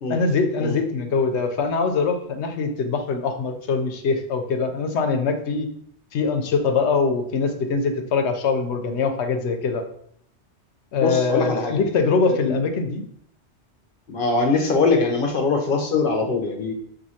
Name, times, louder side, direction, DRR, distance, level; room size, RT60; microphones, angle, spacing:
voice 1, 0.1-5.7 6.1-9.8 10.9-13.0, left 4 dB, 75° left, 5 dB, 0.9 m, -23 dB
voice 2, 10.9-11.7 12.3-12.6 14.1-16.7, left 4 dB, 55° left, 3 dB, 0.9 m, -22 dB
6.1 x 2.7 x 2.8 m, 0.67 s
omnidirectional pair, 1.2 m